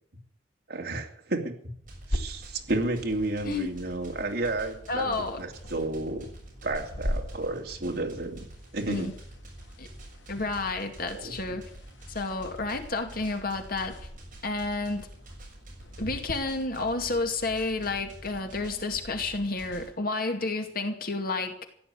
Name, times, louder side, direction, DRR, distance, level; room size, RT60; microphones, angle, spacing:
voice 1, 0.7-1.8 2.1-6.3 6.6-8.5 8.7-9.1 11.1-11.6, right 2 dB, 60° right, 2 dB, 2.7 m, -32 dB
sound 1, 1.8-19.9, right 1 dB, 45° right, 6.8 m, -47 dB
sound 2, 2.1-16.3, equal, 90° left, 2.0 m, -41 dB
voice 2, 4.9-5.4 8.9-9.1 9.8-9.9 10.3-11.7 12.1-14.1 14.4-15.1 16.0-21.7, left 3 dB, 55° left, 5 dB, 2.3 m, -30 dB
15.5 x 10.0 x 8.4 m, 0.64 s
head